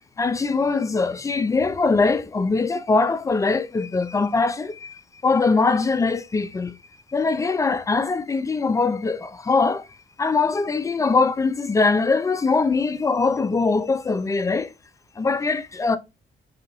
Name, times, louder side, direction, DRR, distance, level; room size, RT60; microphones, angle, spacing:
voice 1, 0.2-6.7 7.1-9.9 10.2-14.7 15.2-16.0, left 4 dB, 15° left, 0.3 m, -22 dB
2.7 x 2.4 x 3.0 m
cardioid pair, 90°, 20 cm